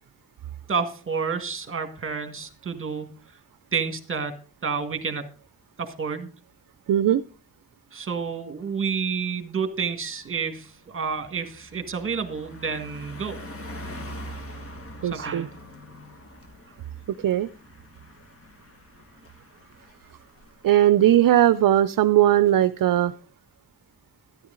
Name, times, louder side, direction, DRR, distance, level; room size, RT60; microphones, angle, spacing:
voice 1, 0.7-3.1 3.7-4.4 4.6-5.3 5.8-6.3 7.9-13.4 15.1-15.5, right 5 dB, 35° right, 8 dB, 1.9 m, -29 dB
voice 2, 6.9-7.2 15.0-15.5 17.2-17.5 20.6-23.1, right 12 dB, 60° right, 14 dB, 0.6 m, -19 dB
Car passing by, 9.2-9.4 9.8-20.7, equal, 35° left, 2.0 m, -43 dB
12.5 x 11.0 x 3.8 m, 0.37 s
wide cardioid pair, 140°, 37 cm